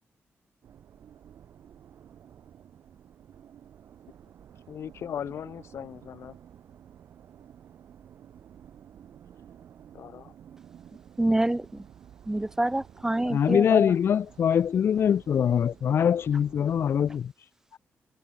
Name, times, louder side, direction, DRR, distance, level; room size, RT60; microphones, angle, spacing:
sound 1, 0.6-17.2, right 9 dB, 85° right, 2.5 m, -52 dB
voice 1, 4.7-6.4 9.9-10.3, left 9 dB, 80° left, 4.8 m, -38 dB
voice 2, 11.2-11.8 12.3-13.9, right 1 dB, 10° right, 0.8 m, -27 dB
voice 3, 13.2-17.8, left 8 dB, 60° left, 0.4 m, -23 dB
wide cardioid pair, 125°, 4 cm